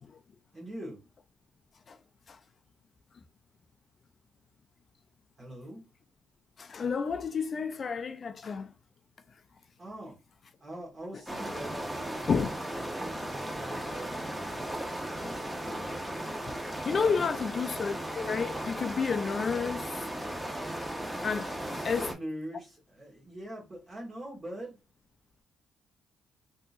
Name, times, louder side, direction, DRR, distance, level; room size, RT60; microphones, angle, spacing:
voice 1, 0.5-1.0 5.4-5.8 9.8-15.9 16.8-17.3 21.6-24.8, right 1 dB, 35° right, 1.6 m, -44 dB
voice 2, 6.6-8.7 12.3-12.5 16.8-20.0 21.2-21.5 21.8-22.1, left 5 dB, 45° left, 0.3 m, -31 dB
sound 1, 11.3-22.1, right 1 dB, 10° right, 0.9 m, -36 dB
3.6 x 2.8 x 2.4 m
cardioid pair, 90°, 0 cm